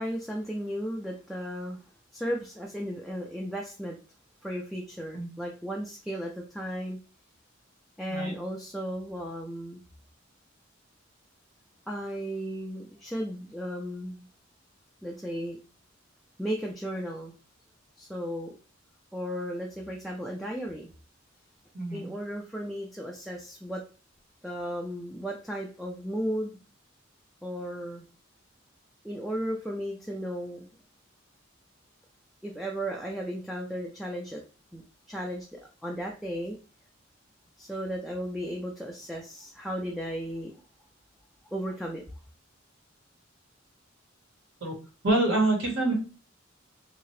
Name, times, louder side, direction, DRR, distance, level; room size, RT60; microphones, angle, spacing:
voice 1, 0.0-1.8 2.1-4.0 4.4-7.0 8.0-9.8 11.9-14.2 15.0-15.6 16.4-17.3 18.0-18.5 19.1-20.9 21.9-23.8 24.4-26.6 27.4-28.0 29.0-30.7 32.4-34.4 34.7-34.8 35.1-36.6 37.6-40.6 41.5-42.0, equal, ahead, -2 dB, 0.4 m, -35 dB
voice 2, 21.7-22.1 44.6-44.7 45.0-45.9, right 2 dB, 80° right, -2 dB, 1.6 m, -26 dB
2.8 x 2.7 x 3.1 m, 0.35 s
head